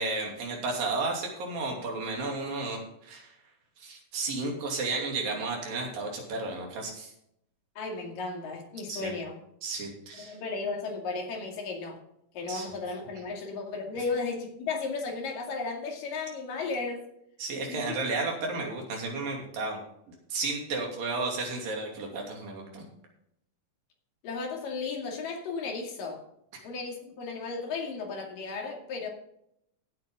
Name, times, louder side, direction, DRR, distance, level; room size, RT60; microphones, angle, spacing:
voice 1, 0.0-3.3 3.8-7.1 8.9-9.1 9.6-10.4 12.5-12.7 17.4-19.8 20.1-22.8, right 3 dB, 90° right, 0 dB, 4.5 m, -33 dB
voice 2, 7.8-9.4 10.3-12.0 12.3-17.0 17.7-18.0 24.2-26.2 26.6-29.1, left 4 dB, 80° left, 1 dB, 4.0 m, -34 dB
16.0 x 8.3 x 3.7 m, 0.75 s
omnidirectional pair, 3.9 m